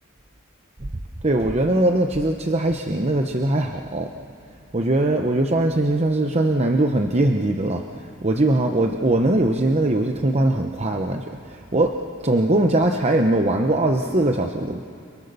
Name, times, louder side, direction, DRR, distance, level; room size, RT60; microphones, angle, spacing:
voice 1, 1.2-4.1 4.7-14.8, right 1 dB, 30° right, 4 dB, 0.9 m, -21 dB
30.0 x 22.0 x 6.8 m, 2.5 s
head